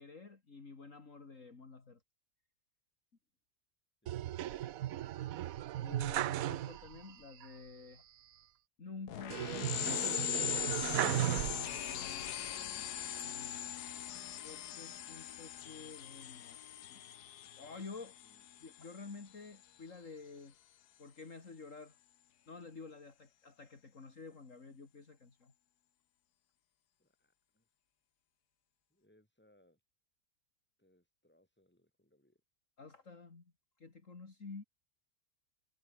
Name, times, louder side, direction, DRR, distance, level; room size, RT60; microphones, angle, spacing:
voice 1, 0.0-2.0 5.7-8.0 8.8-13.0 13.2-13.6 14.4-16.6 16.9-17.0 17.6-18.2 18.6-20.5 21.0-22.0 22.5-25.5 32.8-33.5 33.8-34.6, left 4 dB, 55° left, 3.0 m, -51 dB
voice 2, 4.0-4.9 18.2-18.4 27.0-27.7 28.9-29.8 30.8-32.4, left 1 dB, 5° left, 6.1 m, -70 dB
sound 1, 4.1-7.1 7.4-7.5 9.3-12.0 12.6-13.4, right 13 dB, 70° right, 1.1 m, -36 dB
sound 2, 9.1-19.2, left 11 dB, 85° left, 1.5 m, -40 dB
omnidirectional pair, 1.6 m